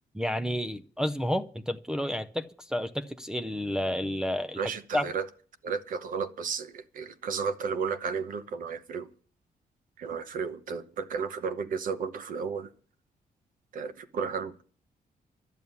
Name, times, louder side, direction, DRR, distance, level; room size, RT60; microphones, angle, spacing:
voice 1, 0.1-5.1, equal, 5° right, 5 dB, 0.5 m, -31 dB
voice 2, 4.6-5.3 5.6-9.1 10.0-12.7 13.7-14.6, right 5 dB, 60° right, 11 dB, 0.9 m, -33 dB
12.5 x 7.1 x 9.5 m, 0.44 s
wide cardioid pair, 175°, 15 cm